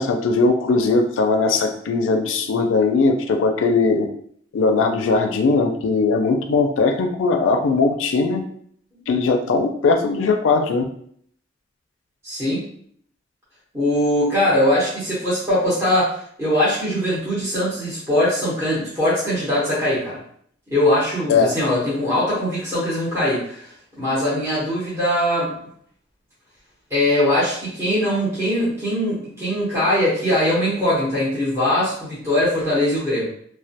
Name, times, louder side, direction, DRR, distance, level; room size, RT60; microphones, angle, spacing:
voice 1, 0.0-4.1 4.5-8.4 9.1-10.8 21.3-21.5, left 3 dB, 85° left, 4 dB, 0.4 m, -19 dB
voice 2, 12.2-12.6 13.7-20.2 20.7-23.7 24.0-25.5 26.9-33.3, left 1 dB, 15° right, -10 dB, 0.9 m, -21 dB
2.2 x 2.1 x 2.7 m, 0.63 s
head